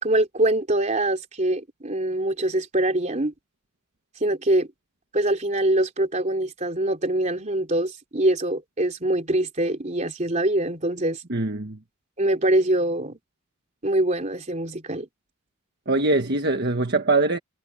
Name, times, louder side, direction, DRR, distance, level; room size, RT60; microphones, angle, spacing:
voice 1, 0.0-3.3 4.2-4.7 5.1-11.2 12.2-13.2 13.8-15.1, right 1 dB, 35° right, 3.4 m, -24 dB
voice 2, 11.3-11.8 15.9-17.4, right 3 dB, 50° right, 1.5 m, -22 dB
head